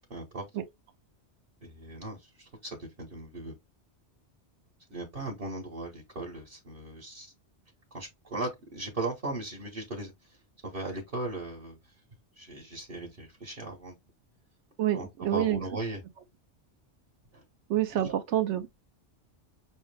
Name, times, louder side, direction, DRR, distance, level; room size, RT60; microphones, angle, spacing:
voice 1, 0.1-0.4 1.6-3.6 4.9-7.3 7.9-10.1 10.6-11.8 12.4-14.0 14.9-16.0 17.3-17.4 17.9-18.1, right 2 dB, 50° right, 1.3 m, -38 dB
voice 2, 14.8-15.6 17.7-18.7, right 12 dB, 85° right, 1.0 m, -27 dB
6.3 x 2.1 x 3.3 m
omnidirectional pair, 1.2 m